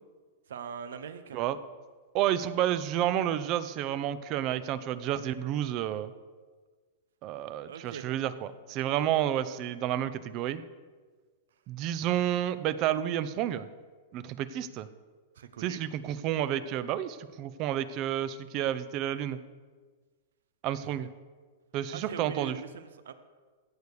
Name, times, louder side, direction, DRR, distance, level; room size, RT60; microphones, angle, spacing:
voice 1, 0.5-1.4 7.6-8.1 15.3-15.8 20.8-21.0 21.9-23.1, right 7 dB, 85° right, 11 dB, 0.9 m, -41 dB
voice 2, 2.1-6.1 7.2-10.6 11.7-13.7 14.1-14.9 15.6-19.4 20.6-21.1 21.7-22.5, right 11 dB, 40° right, 14 dB, 0.6 m, -30 dB
16.0 x 6.9 x 4.9 m, 1.4 s
hypercardioid pair, 140°, 0 cm